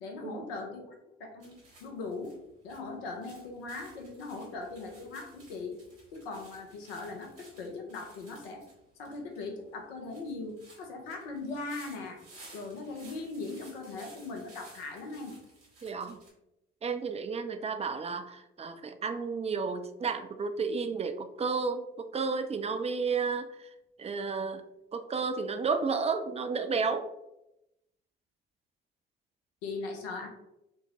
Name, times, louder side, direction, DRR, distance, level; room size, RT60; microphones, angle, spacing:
voice 1, 0.0-2.4 2.6-5.8 6.1-8.6 9.0-12.2 12.5-15.3 29.6-30.3, left 3 dB, 85° left, 3 dB, 0.7 m, -40 dB
sound 1, 1.4-16.3, right 2 dB, 80° right, 1.5 m, -56 dB
voice 2, 15.8-16.2 16.8-23.7 24.0-24.6 24.9-27.1, right 5 dB, 20° right, 8 dB, 0.4 m, -32 dB
4.4 x 2.1 x 2.9 m, 0.89 s
hypercardioid pair, 45°, 29 cm